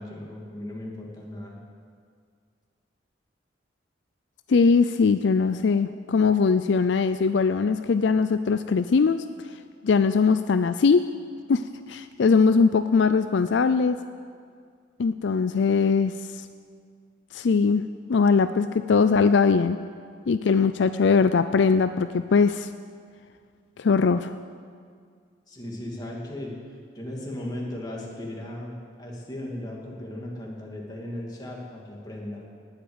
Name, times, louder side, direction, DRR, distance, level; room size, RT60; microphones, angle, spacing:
voice 1, 0.0-1.6 25.5-32.5, left 1 dB, 20° left, -2 dB, 2.5 m, -37 dB
voice 2, 4.5-9.2 9.8-11.0 11.5-11.6 11.9-14.0 15.0-16.1 17.3-17.8 18.1-19.8 20.3-22.7 23.8-24.3, left 5 dB, 70° left, 11 dB, 0.4 m, -21 dB
19.5 x 8.0 x 8.0 m, 2.1 s
head